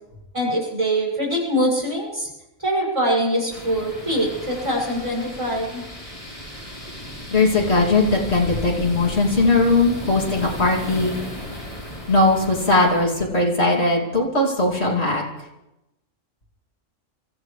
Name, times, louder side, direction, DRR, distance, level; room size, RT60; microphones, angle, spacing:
voice 1, 0.3-2.3 2.6-5.8, equal, 25° right, -4 dB, 6.7 m, -23 dB
sound 1, 3.5-13.0, equal, 25° left, 3.6 m, -34 dB
voice 2, 7.3-11.1 12.1-15.2, left 2 dB, 55° left, -2 dB, 3.0 m, -19 dB
28.5 x 14.0 x 3.3 m, 0.94 s
omnidirectional pair, 1.3 m